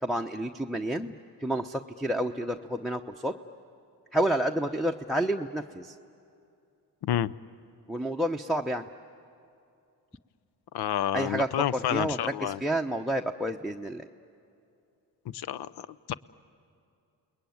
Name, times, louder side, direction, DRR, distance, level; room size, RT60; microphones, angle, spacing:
voice 1, 0.0-1.1 1.4-3.3 4.1-5.9 7.9-8.8 11.1-14.0, right 1 dB, ahead, 6 dB, 0.8 m, -29 dB
voice 2, 7.0-7.3 10.7-12.6 15.3-16.1, left 11 dB, 65° left, 18 dB, 0.7 m, -30 dB
29.5 x 20.5 x 9.4 m, 2.5 s
supercardioid pair, 65°, 42 cm